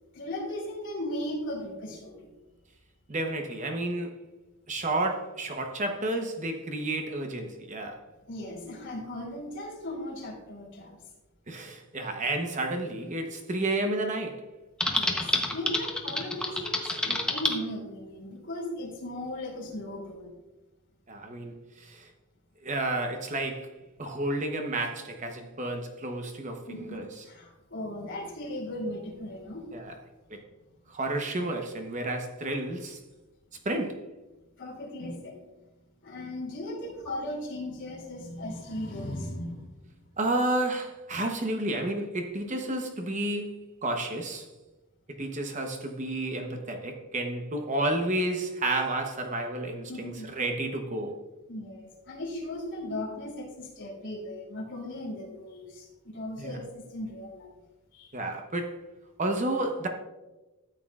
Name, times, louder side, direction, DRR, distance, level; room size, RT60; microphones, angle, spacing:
voice 1, 0.1-2.3 8.3-11.0 14.9-20.3 26.7-29.7 34.6-35.5 36.0-39.7 49.9-50.3 51.5-57.5 57.9-58.1, left 1 dB, 55° left, 2.7 m, -37 dB
voice 2, 3.1-4.2 4.7-8.0 11.5-14.5 21.1-22.1 22.6-23.7 24.0-27.2 29.7-29.9 30.3-30.4 30.9-33.0 33.6-34.1 40.2-44.5 45.1-51.2 56.4-56.6 58.1-58.8 59.2-59.9, right 2 dB, 35° right, 0.9 m, -31 dB
Typing, 14.8-17.5, left 2 dB, 5° left, 0.8 m, -28 dB
13.0 x 8.4 x 2.4 m
head